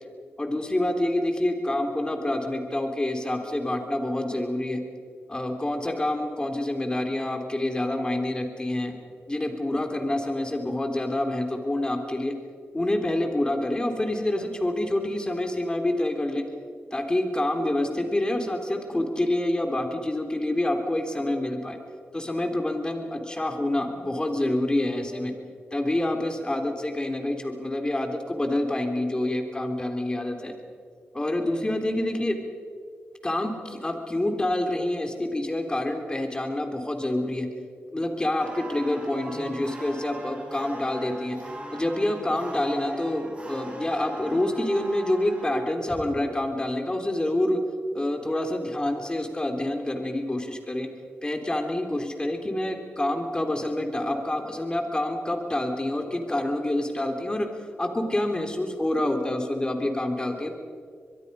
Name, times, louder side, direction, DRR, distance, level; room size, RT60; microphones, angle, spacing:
voice 1, 0.4-4.8 5.3-8.9 9.3-12.3 12.7-16.4 16.9-21.8 22.1-25.3 25.7-30.5 31.1-32.4 33.2-37.5 37.9-41.4 41.7-47.6 47.9-50.9 51.2-57.5 57.8-60.5, left 1 dB, 20° left, 5 dB, 3.4 m, -27 dB
sound 1, 38.4-46.2, right 1 dB, 25° right, 5.2 m, -39 dB
23.5 x 22.0 x 5.6 m, 2.1 s
cardioid pair, 75°, 4 cm